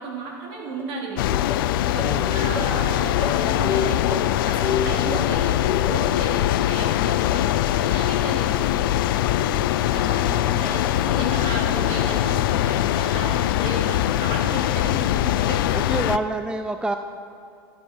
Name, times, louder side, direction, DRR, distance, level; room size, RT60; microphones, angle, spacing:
voice 1, 0.0-1.4 2.3-4.2 4.5-8.8 9.9-16.4, right 2 dB, 50° right, -2 dB, 3.7 m, -34 dB
sound 1, 0.7-0.9 1.3-5.3 5.6-6.4 6.7-12.7 13.2-13.7 14.7-14.9, left 4 dB, 15° left, 2.0 m, -33 dB
sound 2, 1.2-16.2, left 13 dB, 70° left, 0.5 m, -22 dB
voice 2, 9.4-9.8 15.7-17.0, right 2 dB, 5° right, 8 dB, 0.5 m, -28 dB
13.0 x 11.0 x 5.6 m, 2.6 s
hypercardioid pair, 105°, 12 cm